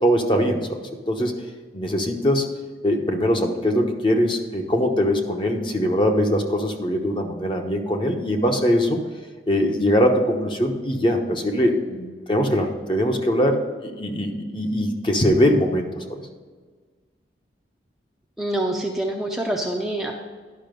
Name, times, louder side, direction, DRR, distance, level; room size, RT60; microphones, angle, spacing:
voice 1, 0.0-1.4 1.7-2.4 2.8-9.0 9.5-16.2, equal, 30° left, 3 dB, 1.0 m, -22 dB
voice 2, 18.4-20.1, right 1 dB, 5° right, 0 dB, 0.6 m, -26 dB
11.0 x 5.8 x 5.2 m, 1.5 s
head